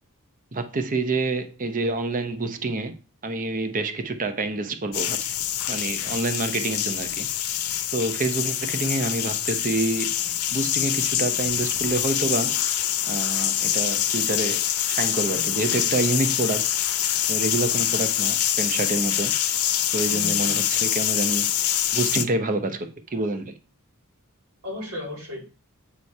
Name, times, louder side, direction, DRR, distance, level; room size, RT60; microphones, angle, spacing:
voice 1, 0.5-3.0 3.2-5.3 5.7-7.3 7.9-10.2 10.5-16.7 17.3-19.3 19.9-21.5 21.9-23.5, right 2 dB, 40° right, 0.7 m, -27 dB
sound 1, 4.9-22.2, left 11 dB, 80° left, 0.7 m, -25 dB
voice 2, 20.0-20.5 24.6-25.5, left 2 dB, 85° right, 2.7 m, -34 dB
8.5 x 3.1 x 5.3 m
head